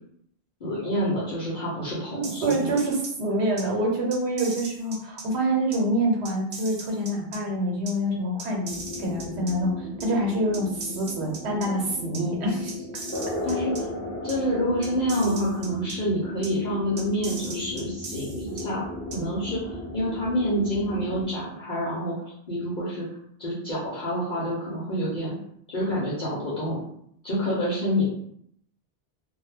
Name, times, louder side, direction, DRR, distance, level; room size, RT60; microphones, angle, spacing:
voice 1, 0.6-2.7 13.4-13.9 14.2-18.8 19.1-22.2 22.5-23.0 23.4-25.3 25.7-26.8 27.2-28.1, equal, 50° left, -8 dB, 0.8 m, -27 dB
voice 2, 2.1-12.9, right 1 dB, 80° right, -1 dB, 1.0 m, -26 dB
sound 1, 2.2-3.1 3.6-3.7 4.1-5.2 5.7-5.8 6.2-7.4 7.9-8.0 8.4-9.5 10.0-10.1 10.5-11.7 12.1-12.2 12.7-13.8 14.3-14.4 14.8-15.9 16.4-16.5 17.0-18.6 19.1-19.2, right 3 dB, 45° right, 0.4 m, -39 dB
sound 2, 8.7-21.2, left 1 dB, 15° left, 0.5 m, -36 dB
2.2 x 2.1 x 3.2 m, 0.69 s
omnidirectional pair, 1.1 m